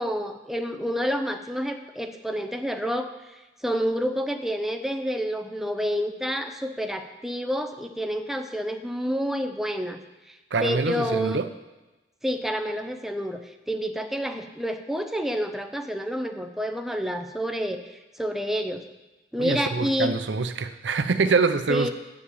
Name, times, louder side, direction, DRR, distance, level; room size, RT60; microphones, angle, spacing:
voice 1, 0.0-10.0 10.3-11.4 12.2-18.8 19.3-20.2 21.7-21.9, equal, ahead, 5 dB, 0.7 m, -29 dB
voice 2, 10.5-11.5 19.4-21.9, right 4 dB, 85° right, 9 dB, 0.6 m, -25 dB
7.5 x 7.1 x 8.3 m, 1.1 s
head